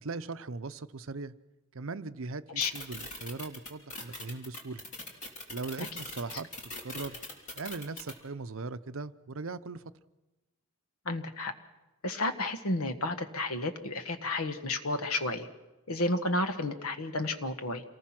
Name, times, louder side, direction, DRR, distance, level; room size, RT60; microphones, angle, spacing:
voice 1, 0.0-1.3 1.7-4.8 5.5-7.2 7.5-9.9, right 3 dB, 65° right, 13 dB, 0.7 m, -39 dB
sound 1, 2.6-8.1, left 2 dB, 35° left, 3.4 m, -41 dB
voice 2, 11.0-11.5 12.0-15.5 15.9-17.8, left 2 dB, 75° left, 8 dB, 1.6 m, -31 dB
27.5 x 19.5 x 6.0 m, 1.1 s
head